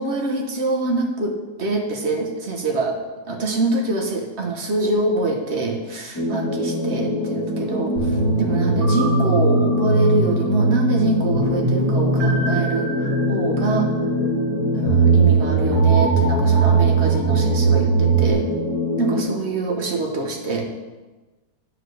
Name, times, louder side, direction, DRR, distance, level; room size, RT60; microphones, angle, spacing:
voice 1, 0.0-3.0 3.3-13.9 14.7-18.5 19.0-20.7, right 2 dB, 45° right, 2 dB, 1.2 m, -25 dB
sound 1, 6.2-19.2, left 2 dB, 10° left, 1.5 m, -25 dB
sound 2, 8.0-18.3, right 4 dB, 85° right, 2.2 m, -20 dB
8.6 x 4.9 x 6.4 m, 1.2 s
omnidirectional pair, 1.8 m